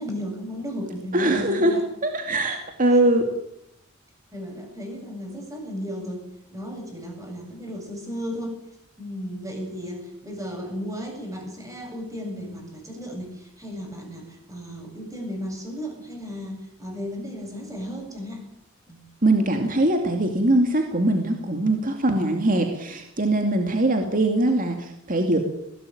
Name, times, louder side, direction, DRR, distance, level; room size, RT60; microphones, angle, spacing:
voice 1, 0.0-1.9 4.3-6.2 6.5-8.6 9.0-18.4 18.9-19.0, equal, 15° right, 2 dB, 8.0 m, -34 dB
voice 2, 1.1-1.7 2.0-3.3 19.2-25.4, right 1 dB, 40° right, 4 dB, 2.4 m, -22 dB
20.5 x 18.0 x 9.0 m, 0.78 s
head